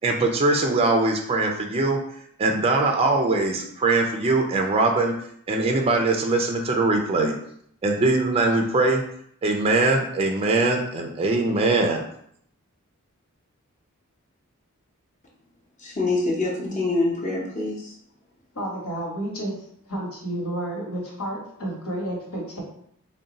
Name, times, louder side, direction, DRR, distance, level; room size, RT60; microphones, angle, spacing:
voice 1, 0.0-2.0 2.4-5.1 5.5-7.3 7.8-9.0 9.4-12.0, right 2 dB, 25° right, 2 dB, 0.4 m, -21 dB
voice 2, 15.8-17.9, left 2 dB, 35° left, -3 dB, 0.7 m, -25 dB
voice 3, 18.5-19.5 19.9-22.6, right 1 dB, 75° left, -2 dB, 1.3 m, -31 dB
3.7 x 2.2 x 3.9 m, 0.69 s
head